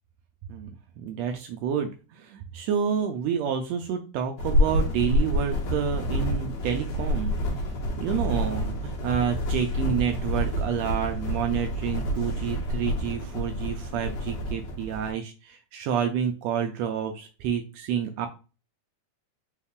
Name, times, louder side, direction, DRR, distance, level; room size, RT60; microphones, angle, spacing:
voice 1, 1.0-7.3 8.0-18.3, right 8 dB, 90° right, 4 dB, 1.5 m, -29 dB
sound 1, 4.4-15.1, equal, 65° left, 2.4 m, -28 dB
5.4 x 2.3 x 3.5 m, 0.33 s
omnidirectional pair, 3.6 m